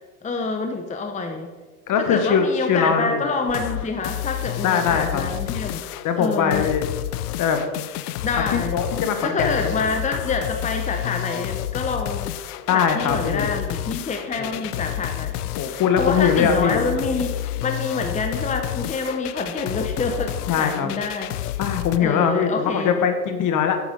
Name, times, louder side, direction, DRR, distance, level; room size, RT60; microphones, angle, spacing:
voice 1, 0.2-1.5 2.0-5.8 6.1-6.7 8.2-8.8 9.2-12.3 12.7-21.4 22.0-23.0, left 4 dB, 15° left, 5 dB, 1.0 m, -27 dB
voice 2, 1.9-3.3 4.6-5.3 6.0-6.8 7.4-7.6 8.3-8.4 8.7-9.7 12.7-13.5 14.4-14.6 15.5-16.8 20.5-20.9 21.6-23.8, left 7 dB, 40° left, 7 dB, 1.4 m, -21 dB
sound 1, 3.5-22.0, left 14 dB, 75° left, 0.6 m, -30 dB
8.4 x 7.3 x 5.2 m, 1.3 s
hypercardioid pair, 85°, 46 cm